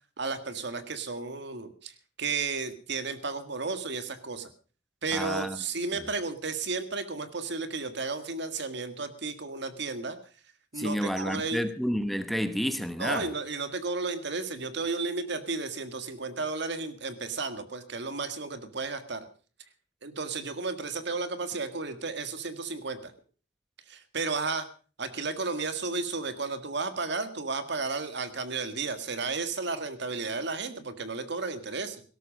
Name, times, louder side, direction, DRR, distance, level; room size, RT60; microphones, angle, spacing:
voice 1, 0.2-1.9 2.2-4.5 5.0-10.2 10.7-11.6 13.0-19.2 20.0-23.1 23.9-24.7 25.0-32.0, right 4 dB, 65° right, 1.7 m, -33 dB
voice 2, 5.1-5.6 10.8-13.3, equal, ahead, 1.1 m, -30 dB
17.5 x 13.0 x 5.2 m
head